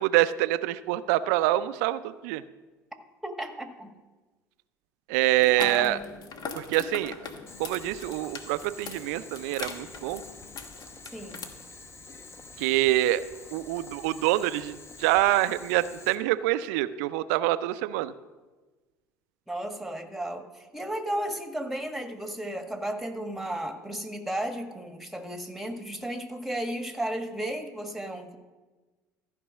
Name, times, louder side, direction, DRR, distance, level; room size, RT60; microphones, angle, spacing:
voice 1, 0.0-2.4 5.1-6.0 6.5-7.1 7.6-10.2 12.6-13.2 13.5-18.1, right 15 dB, 65° right, 15 dB, 0.5 m, -25 dB
voice 2, 3.2-3.9 5.6-6.1 11.1-11.5 19.5-28.4, right 1 dB, ahead, 6 dB, 1.5 m, -34 dB
sound 1, 5.3-11.4, left 5 dB, 50° left, 1.2 m, -41 dB
Boiling, 7.5-16.1, left 3 dB, 30° left, 1.2 m, -47 dB
14.0 x 5.4 x 6.3 m, 1.2 s
hypercardioid pair, 65°, 9 cm